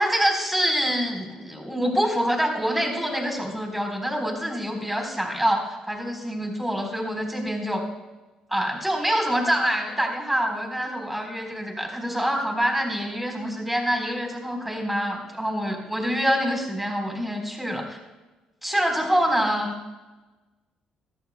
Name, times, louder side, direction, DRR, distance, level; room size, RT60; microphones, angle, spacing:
voice 1, 0.0-7.8 8.5-18.0 18.6-19.7, equal, 5° right, 3 dB, 4.0 m, -26 dB
22.0 x 14.0 x 2.2 m, 1.2 s
supercardioid pair, 75°, 2 cm